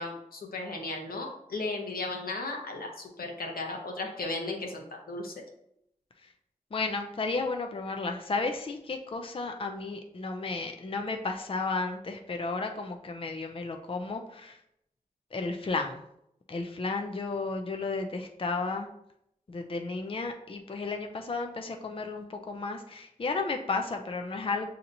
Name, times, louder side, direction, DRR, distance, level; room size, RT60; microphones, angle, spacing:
voice 1, 0.0-5.3, left 2 dB, 90° left, 1 dB, 0.9 m, -35 dB
voice 2, 6.7-14.6 15.3-16.0 16.5-18.9 19.5-24.7, left 3 dB, 40° left, 4 dB, 0.4 m, -33 dB
6.3 x 2.8 x 2.6 m, 0.76 s
wide cardioid pair, 60°, 15 cm